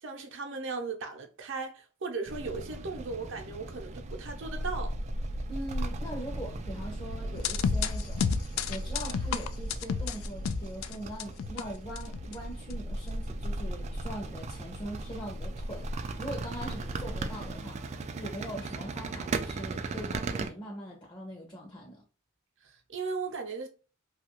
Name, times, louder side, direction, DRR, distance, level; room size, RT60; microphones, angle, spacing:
voice 1, 0.0-5.0 22.6-23.7, right 4 dB, 65° right, 0.7 m, -37 dB
sound 1, 2.3-20.5, right 2 dB, 35° right, 0.3 m, -37 dB
voice 2, 5.5-8.3 8.7-17.8 18.1-22.0, right 1 dB, 25° left, 0.7 m, -41 dB
sound 2, 7.4-11.6 12.0-12.4 12.7-12.8, left 6 dB, 75° left, 0.3 m, -31 dB
2.8 x 2.4 x 2.9 m
head